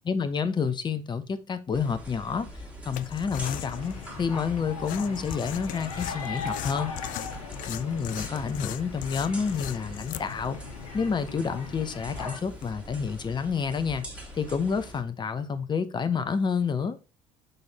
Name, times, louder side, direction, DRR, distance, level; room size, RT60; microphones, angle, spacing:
voice 1, 0.1-2.5 2.9-6.9 7.7-10.6 10.9-14.0 14.4-17.0, left 6 dB, 25° left, 0.8 m, -29 dB
cave waterdrops, 1.7-15.0, equal, 5° right, 2.6 m, -43 dB
sound 1, 2.9-12.7, left 13 dB, 50° left, 0.4 m, -40 dB
sound 2, 3.4-12.4, left 5 dB, 80° left, 1.1 m, -40 dB
6.6 x 4.4 x 4.1 m
figure-of-eight pair, 60°, 18 cm